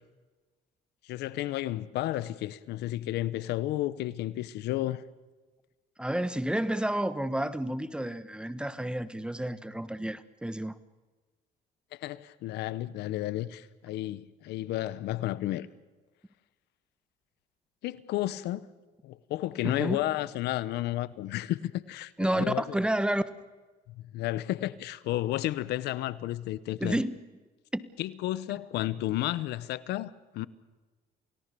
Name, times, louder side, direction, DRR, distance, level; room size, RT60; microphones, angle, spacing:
voice 1, 1.1-5.0 11.9-15.7 17.8-18.6 19.0-22.8 23.9-27.0 28.0-30.5, left 15 dB, 80° left, 1.0 m, -32 dB
voice 2, 6.0-10.7 19.6-20.0 22.2-23.2 26.8-27.2 27.7-27.8, right 1 dB, 5° right, 1.2 m, -30 dB
29.0 x 18.5 x 6.9 m
cardioid pair, 110°, 17 cm